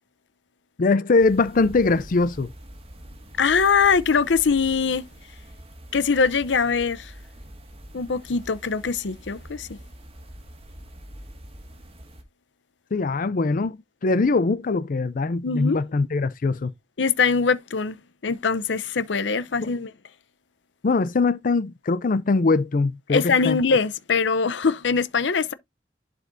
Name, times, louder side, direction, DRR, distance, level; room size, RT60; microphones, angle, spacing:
voice 1, 0.8-2.5 12.9-16.7 19.6-19.7 20.8-23.6, left 3 dB, 50° left, 0.5 m, -22 dB
sound 1, 1.2-12.2, equal, 35° right, 1.8 m, -44 dB
voice 2, 3.4-5.0 5.9-7.1 7.9-9.8 15.4-15.8 17.0-18.0 18.2-19.9 23.1-25.5, left 5 dB, 85° left, 0.7 m, -22 dB
11.0 x 5.1 x 2.6 m
head